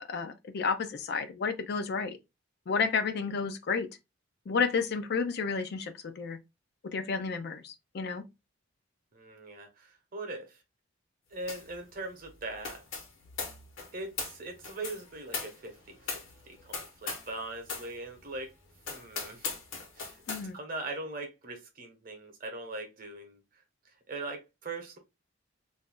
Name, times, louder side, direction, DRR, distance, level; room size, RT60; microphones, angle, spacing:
voice 1, 0.1-2.2 2.7-3.9 4.5-6.4 6.9-8.2 20.3-20.6, left 5 dB, 50° left, 0.4 m, -31 dB
voice 2, 9.1-10.6 11.3-12.8 13.9-18.5 18.9-19.6 19.9-20.2 20.5-25.0, right 2 dB, 45° right, 0.9 m, -41 dB
sound 1, 11.5-11.8 12.0-17.4 17.6-17.9 18.3-18.4 18.8-20.5, left 4 dB, 70° left, 1.1 m, -39 dB
2.6 x 2.3 x 3.5 m
head